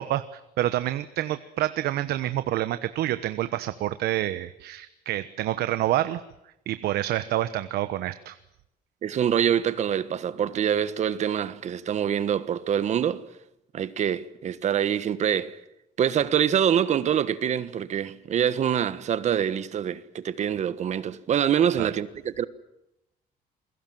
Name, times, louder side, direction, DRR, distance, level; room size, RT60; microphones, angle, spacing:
voice 1, 0.0-6.2 6.7-8.4 21.8-21.9, right 14 dB, 85° right, 1.1 m, -28 dB
voice 2, 9.0-13.3 13.7-15.6 16.0-22.4, right 9 dB, 45° right, 1.4 m, -25 dB
28.0 x 22.0 x 7.7 m
cardioid pair, 160°, 16 cm